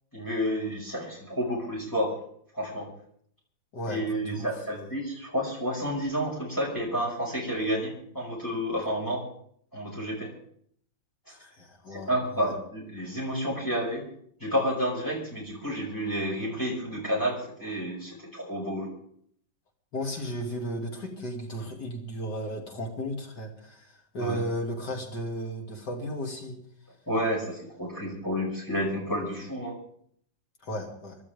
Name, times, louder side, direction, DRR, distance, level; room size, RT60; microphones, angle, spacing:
voice 1, 0.1-2.1 2.5-2.9 3.9-9.2 9.7-10.3 11.9-14.1 14.4-18.9 24.2-24.4 27.1-29.7, equal, 10° left, -3 dB, 5.4 m, -30 dB
voice 2, 3.7-4.5 11.3-12.5 19.9-26.6 30.6-31.2, equal, 65° left, 0 dB, 3.4 m, -35 dB
27.5 x 12.0 x 3.6 m, 0.63 s
omnidirectional pair, 2.0 m